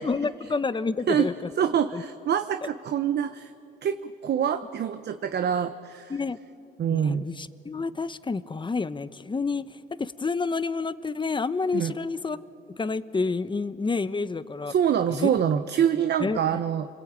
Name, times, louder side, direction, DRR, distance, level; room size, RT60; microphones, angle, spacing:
voice 1, 0.0-1.3 1.9-2.0 6.1-6.4 6.9-9.6 10.0-12.4 12.8-14.7 15.1-15.3 16.2-16.6, left 4 dB, 25° left, 14 dB, 1.0 m, -29 dB
voice 2, 1.6-3.5 3.8-6.1 6.8-7.3 11.7-11.9 14.7-16.9, right 8 dB, 55° right, 9 dB, 0.9 m, -25 dB
29.5 x 22.0 x 8.9 m, 2.7 s
cardioid pair, 90°, 20 cm